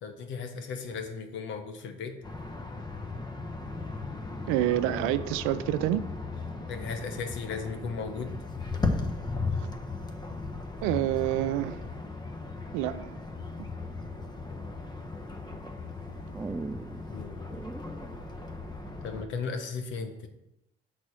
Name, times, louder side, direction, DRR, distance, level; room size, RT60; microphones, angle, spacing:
voice 1, 0.0-2.2 6.7-8.4 17.1-17.4 19.0-20.3, left 5 dB, 70° left, 1.1 m, -36 dB
sound 1, 2.2-19.2, left 3 dB, 20° left, 1.2 m, -36 dB
voice 2, 4.5-6.0 10.8-11.8 12.7-13.2 13.6-13.7, right 13 dB, 80° right, 0.4 m, -27 dB
sound 2, 10.1-12.0 13.0-13.5 14.0-14.8 15.4-18.8, right 3 dB, 10° right, 0.4 m, -43 dB
6.3 x 4.1 x 6.2 m
supercardioid pair, 70°, 21 cm